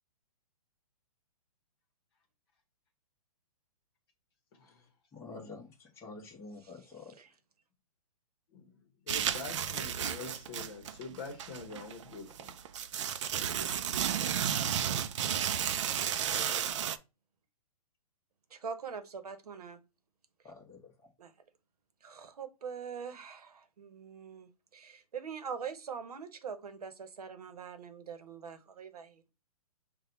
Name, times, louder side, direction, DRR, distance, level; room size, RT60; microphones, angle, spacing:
voice 1, 4.7-7.1 20.4-21.1, left 3 dB, 15° left, 1.2 m, -49 dB
voice 2, 9.1-12.5, left 4 dB, 40° left, 1.1 m, -45 dB
sound 1, 9.1-17.0, right 9 dB, 55° right, 0.5 m, -33 dB
voice 3, 18.5-19.8 21.2-21.3 22.0-29.2, right 6 dB, 90° right, 1.0 m, -43 dB
5.6 x 2.3 x 4.0 m
hypercardioid pair, 155°, 19 cm